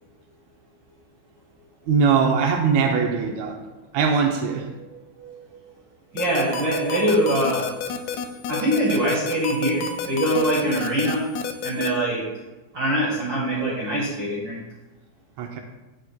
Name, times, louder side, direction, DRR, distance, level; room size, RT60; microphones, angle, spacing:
voice 1, 1.9-3.6 3.9-4.7 15.4-15.6, right 5 dB, 90° right, 2 dB, 1.6 m, -21 dB
voice 2, 6.1-7.7 8.1-8.2 8.5-11.2 11.6-12.2 12.7-14.6, right 1 dB, 45° right, -5 dB, 1.6 m, -23 dB
sound 1, 6.2-11.9, left 7 dB, 85° left, 1.8 m, -29 dB
15.0 x 6.1 x 2.3 m, 1.1 s
omnidirectional pair, 4.2 m